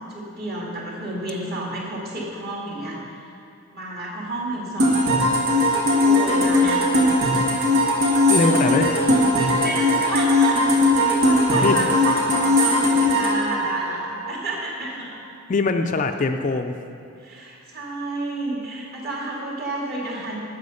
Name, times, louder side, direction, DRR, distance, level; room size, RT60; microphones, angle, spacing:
voice 1, 0.1-3.3 3.7-5.3 6.0-6.9 8.6-10.6 10.9-15.1 17.2-20.4, right 2 dB, 45° right, -3 dB, 2.2 m, -31 dB
sound 1, 4.8-14.5, left 1 dB, 85° right, 1.6 m, -19 dB
voice 2, 8.3-9.0 11.6-11.8 15.5-16.8, left 3 dB, 35° left, 6 dB, 0.4 m, -22 dB
9.5 x 7.7 x 6.4 m, 2.5 s
head